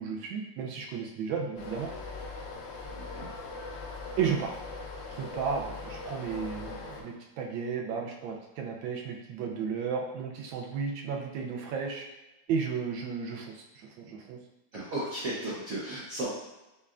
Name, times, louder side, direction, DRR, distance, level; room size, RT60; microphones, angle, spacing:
voice 1, 0.0-1.9 4.2-4.5 5.2-12.1 12.5-14.4, right 6 dB, 85° right, 0 dB, 1.3 m, -33 dB
sound 1, 1.6-7.0, left 3 dB, 80° left, 1.3 m, -40 dB
voice 2, 2.9-3.3 14.7-16.3, right 1 dB, 60° right, -7 dB, 1.0 m, -35 dB
5.4 x 2.3 x 2.4 m, 1.0 s
omnidirectional pair, 2.0 m